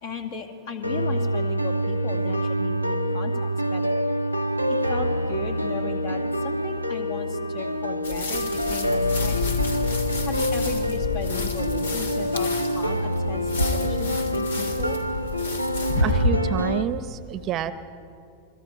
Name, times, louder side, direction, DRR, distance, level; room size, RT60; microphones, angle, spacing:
voice 1, 0.0-4.0 4.9-9.4 10.3-12.5 12.7-13.4 13.7-15.0, left 5 dB, 50° left, 4 dB, 2.2 m, -36 dB
sound 1, 0.8-16.8, equal, 85° left, 0.7 m, -26 dB
sound 2, 8.0-16.3, left 2 dB, 70° left, 1.7 m, -29 dB
voice 2, 16.0-17.7, right 10 dB, 35° right, 13 dB, 0.8 m, -28 dB
29.5 x 22.5 x 4.7 m, 2.5 s
figure-of-eight pair, 90°, 0 cm